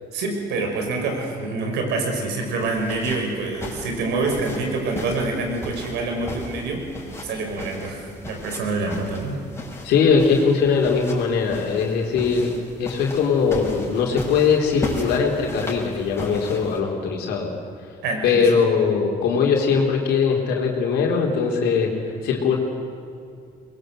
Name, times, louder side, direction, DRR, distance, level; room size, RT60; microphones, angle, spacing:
voice 1, 0.1-9.4 18.0-18.5, right 3 dB, 85° right, 2 dB, 5.8 m, -26 dB
sound 1, 2.6-16.8, left 2 dB, 15° left, 6.1 m, -37 dB
voice 2, 9.8-17.5 18.2-21.9 22.2-22.6, left 5 dB, 80° left, 0 dB, 4.0 m, -20 dB
23.0 x 21.5 x 8.0 m, 2.4 s
cardioid pair, 110°, 17 cm